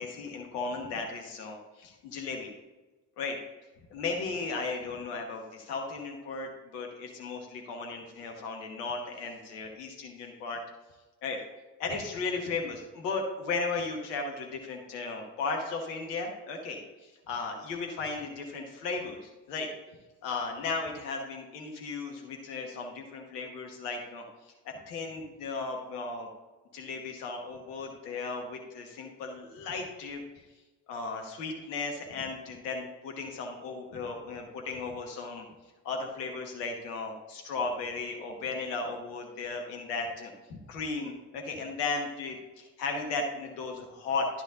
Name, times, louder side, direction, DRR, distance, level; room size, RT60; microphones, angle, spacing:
voice 1, 0.0-2.5 3.2-3.4 3.9-10.6 11.2-11.4 11.8-19.7 20.2-24.2 24.6-26.3 26.7-30.2 30.9-35.5 35.8-44.3, left 4 dB, 75° left, 2 dB, 1.4 m, -35 dB
12.0 x 5.5 x 2.5 m, 1.2 s
figure-of-eight pair, 40°, 49 cm